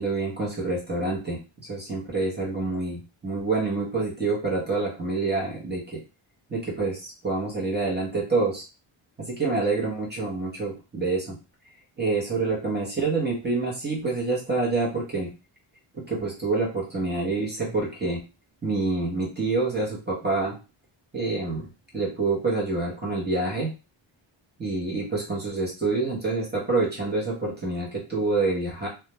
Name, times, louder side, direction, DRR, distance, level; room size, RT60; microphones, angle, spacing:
voice 1, 0.0-6.0 6.5-8.6 9.4-11.4 12.0-15.3 16.1-18.2 18.6-20.6 21.1-21.7 21.9-23.7 24.6-28.9, right 3 dB, 20° right, -4 dB, 0.9 m, -27 dB
2.4 x 2.2 x 3.0 m, 0.31 s
wide cardioid pair, 140°, 49 cm